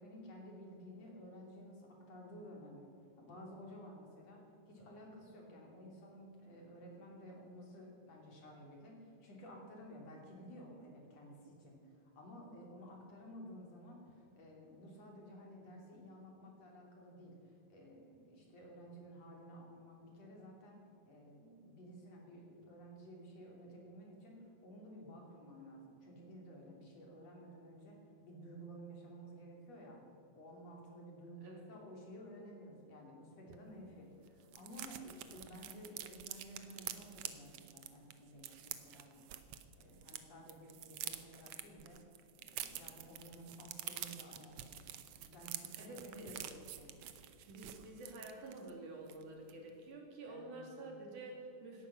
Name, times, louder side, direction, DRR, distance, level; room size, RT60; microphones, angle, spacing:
voice 1, 0.0-2.9 3.2-4.4 4.7-30.0 30.3-39.2 39.7-42.0 42.4-44.8 45.2-47.0 50.3-50.7, equal, 60° left, -1 dB, 4.1 m, -54 dB
sound 1, 33.5-33.6 33.9-34.0 34.2-40.2 40.5-48.7 49.1-49.2 49.5-49.7, right 11 dB, 65° right, 1.6 m, -48 dB
voice 2, 45.8-46.3 47.5-51.9, right 2 dB, 85° right, 0 dB, 4.2 m, -49 dB
17.5 x 13.5 x 6.1 m, 2.7 s
omnidirectional pair, 3.5 m